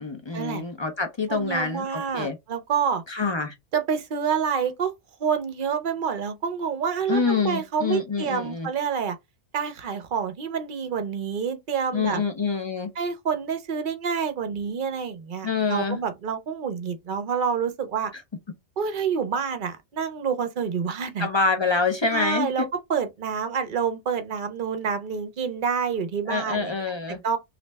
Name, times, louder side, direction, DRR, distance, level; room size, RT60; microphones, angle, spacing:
voice 1, 0.0-2.4 3.1-3.5 7.1-8.7 11.9-12.9 15.4-16.0 18.1-18.2 21.2-22.7 26.3-27.4, left 4 dB, 35° left, 0.4 m, -26 dB
voice 2, 1.3-3.0 3.7-4.9 5.2-9.2 9.5-12.2 13.0-18.1 18.8-21.3 22.1-26.7 27.2-27.4, right 6 dB, 55° right, 0.7 m, -28 dB
3.1 x 2.5 x 3.3 m
omnidirectional pair, 1.2 m